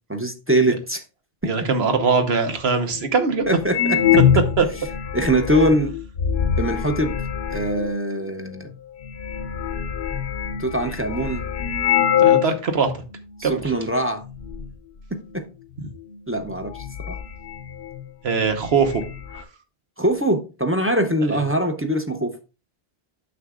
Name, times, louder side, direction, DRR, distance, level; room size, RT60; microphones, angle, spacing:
voice 1, 0.1-1.0 1.4-1.5 3.5-4.2 5.1-5.9 6.6-7.2 7.5-8.7 10.6-11.4 13.4-14.2 15.1-15.5 16.3-16.7 17.0-17.2 20.0-22.4, right 1 dB, 15° right, 0.5 m, -22 dB
voice 2, 1.4-3.6 4.6-4.7 12.2-12.9 13.4-13.7 18.2-19.0 19.3-19.4 21.3-21.4, right 5 dB, 90° right, 1.3 m, -21 dB
sound 1, 2.2-2.3 3.0-3.1 3.7-7.9 8.7-8.8 9.0-12.6 12.9-13.0 13.6-14.0 14.2-14.7 16.0-16.1 16.5-18.1 18.3-18.4 18.7-19.4, left 9 dB, 80° left, 0.9 m, -23 dB
9.5 x 6.6 x 2.4 m
omnidirectional pair, 1.0 m